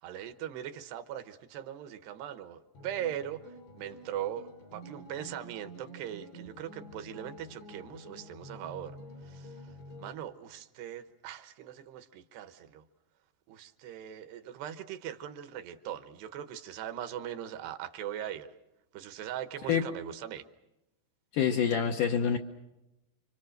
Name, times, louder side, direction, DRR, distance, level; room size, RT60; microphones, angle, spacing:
voice 1, 0.0-12.9 13.5-18.5 18.9-20.5, right 10 dB, 75° right, 10 dB, 3.0 m, -40 dB
sound 1, 2.8-10.1, equal, 85° left, 6.9 m, -49 dB
voice 2, 21.3-22.4, left 8 dB, 70° left, 4 dB, 2.0 m, -26 dB
29.5 x 25.5 x 6.5 m, 0.93 s
omnidirectional pair, 5.0 m